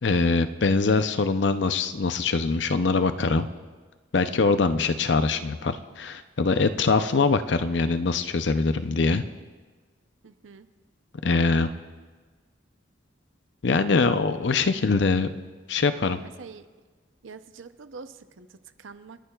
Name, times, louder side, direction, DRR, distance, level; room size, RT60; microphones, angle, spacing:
voice 1, 0.0-3.5 4.1-9.2 11.2-11.7 13.6-15.3 15.7-16.2, left 4 dB, 65° left, 10 dB, 0.6 m, -23 dB
voice 2, 10.2-10.7 16.1-16.7 17.2-19.2, right 4 dB, 90° right, 11 dB, 0.7 m, -45 dB
29.5 x 11.0 x 2.4 m, 1.4 s
head